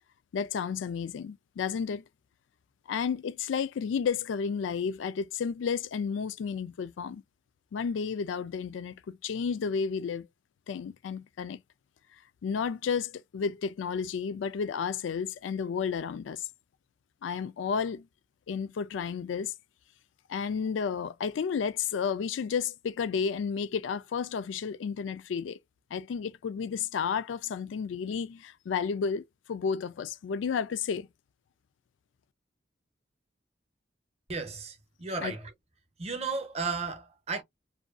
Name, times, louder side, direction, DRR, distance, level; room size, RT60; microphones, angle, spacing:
voice 1, 0.3-2.0 2.9-7.2 7.7-10.3 10.7-11.6 12.4-16.5 17.2-18.1 18.5-19.5 20.3-25.6 25.9-31.1 35.2-35.3, left 6 dB, 90° left, 0.3 m, -32 dB
voice 2, 34.3-35.5 36.0-37.4, right 4 dB, 35° right, 0.6 m, -34 dB
2.6 x 2.3 x 2.4 m
head